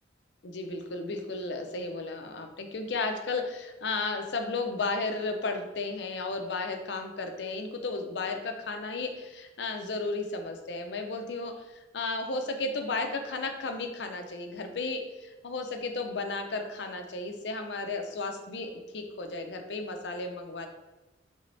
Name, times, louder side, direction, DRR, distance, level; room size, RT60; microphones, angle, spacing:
voice 1, 0.4-20.7, left 3 dB, 75° left, 5 dB, 0.6 m, -34 dB
4.0 x 3.5 x 3.2 m, 1.1 s
head